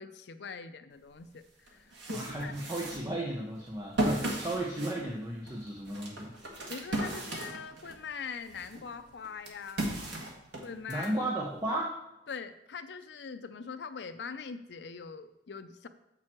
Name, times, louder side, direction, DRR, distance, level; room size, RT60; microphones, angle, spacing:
voice 1, 0.0-2.7 6.7-9.9 10.6-11.1 12.3-15.9, left 5 dB, 70° left, 10 dB, 0.6 m, -42 dB
sound 1, 1.1-1.2 1.7-8.0 8.5-11.1, right 1 dB, 90° right, 1.6 m, -36 dB
voice 2, 2.1-6.3 10.9-12.0, right 1 dB, 20° right, -2 dB, 1.0 m, -34 dB
7.5 x 6.2 x 4.4 m, 0.89 s
head